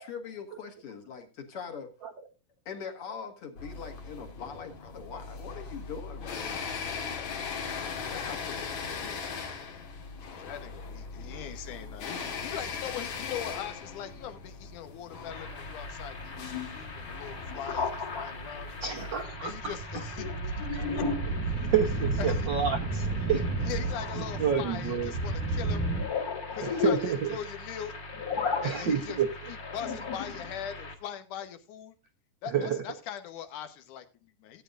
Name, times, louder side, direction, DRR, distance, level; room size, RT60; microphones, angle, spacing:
voice 1, 0.0-1.9 2.7-9.4, left 6 dB, 50° left, 5 dB, 2.3 m, -43 dB
sound 1, 3.6-19.2, left 5 dB, 65° left, 3.0 m, -39 dB
voice 2, 10.3-18.8 19.4-21.1 21.6-21.7 22.2-22.5 23.0-25.9 26.5-27.9 28.6-29.2 29.5-32.0 32.4-34.6, left 9 dB, 85° left, 9 dB, 2.7 m, -41 dB
sound 2, 15.3-30.9, left 4 dB, 35° left, 1.8 m, -36 dB
voice 3, 18.8-19.5 19.9-20.0 20.7-20.9 21.7-23.0 23.3-23.4 24.4-25.1 26.6-27.3 28.6-29.3 32.5-32.8, right 7 dB, 65° right, 4 dB, 1.1 m, -28 dB
strong wind against frame house, 19.2-26.0, right 3 dB, 90° right, 3.5 m, -32 dB
17.0 x 9.0 x 2.5 m, 0.29 s
omnidirectional pair, 3.5 m